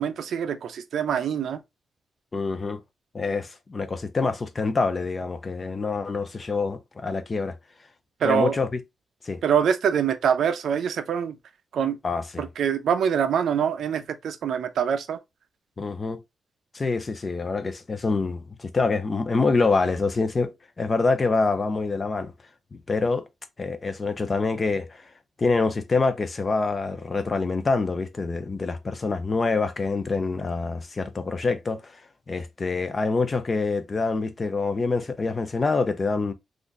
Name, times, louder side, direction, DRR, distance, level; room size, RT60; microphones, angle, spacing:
voice 1, 0.0-1.6 8.2-8.6 9.4-11.4 11.7-12.0 12.4-15.2, right 8 dB, 65° right, 0.4 m, -24 dB
voice 2, 2.3-2.8 3.1-7.6 8.2-8.7 9.2-9.4 12.0-12.4 15.8-16.2 16.7-22.3 22.7-23.3 23.6-25.0 25.4-32.0 32.3-36.3, left 3 dB, 25° left, 0.4 m, -26 dB
3.7 x 2.5 x 2.4 m
wide cardioid pair, 175°, 0 cm